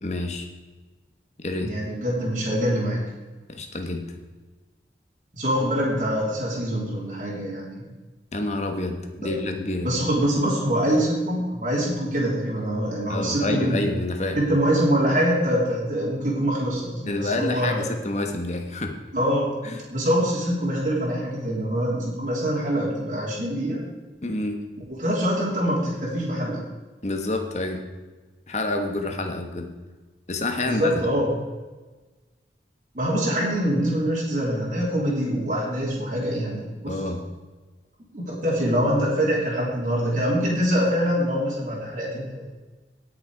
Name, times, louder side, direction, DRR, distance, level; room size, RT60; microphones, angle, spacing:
voice 1, 0.0-0.5 1.4-1.7 3.5-4.2 8.3-10.0 13.1-14.4 17.0-18.9 19.6-19.8 24.2-24.6 27.0-27.8 28.5-29.7 30.3-30.9 36.9-37.2, left 2 dB, 40° left, 5 dB, 1.4 m, -28 dB
voice 2, 1.6-3.0 5.3-7.9 9.2-9.3 9.8-13.8 14.3-17.9 19.1-19.5 19.9-23.8 25.0-26.6 30.6-31.3 32.9-36.9 38.1-42.5, equal, 45° right, -5 dB, 3.2 m, -24 dB
17.5 x 6.7 x 4.8 m, 1.2 s
head